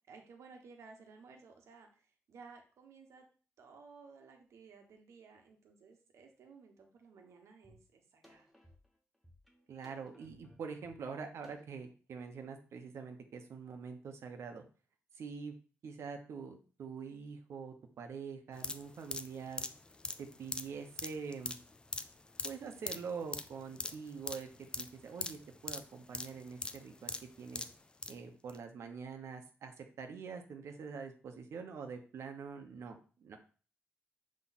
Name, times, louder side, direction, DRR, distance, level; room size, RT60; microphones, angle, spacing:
voice 1, 0.1-1.9 2.3-3.2 3.6-8.5, right 4 dB, 90° right, 3 dB, 1.3 m, -56 dB
sound 1, 7.6-7.8 8.2-11.8, left 1 dB, ahead, 1.2 m, -62 dB
voice 2, 9.7-14.6 15.1-15.6 15.8-19.6 20.2-21.6 22.4-24.5 24.8-27.6 28.1-33.4, right 5 dB, 75° right, 4 dB, 0.9 m, -45 dB
sound 2, 18.5-28.2 28.5-28.6, left 3 dB, 20° left, 0.4 m, -42 dB
7.3 x 3.2 x 4.1 m, 0.38 s
wide cardioid pair, 150°, 5 cm